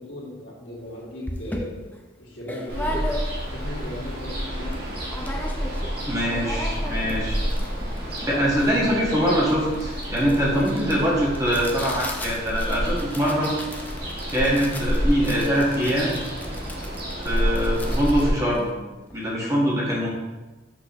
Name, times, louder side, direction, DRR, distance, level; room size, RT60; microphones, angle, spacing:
voice 1, 0.0-1.8 2.2-3.0 3.4-4.9, left 1 dB, 65° left, -5 dB, 2.0 m, -37 dB
sound 1, 0.8-0.9 1.3-3.6 4.1-4.2 4.3-4.8 5.1-5.9 6.2-19.3, left 1 dB, 10° left, 0.5 m, -37 dB
Ocean, 2.7-18.3, equal, 55° right, 1.8 m, -29 dB
voice 2, 6.1-7.4 8.2-13.5 14.3-16.1 17.2-18.7 19.1-20.1, equal, 15° right, -5 dB, 1.4 m, -23 dB
6.2 x 6.1 x 2.9 m, 1.2 s
head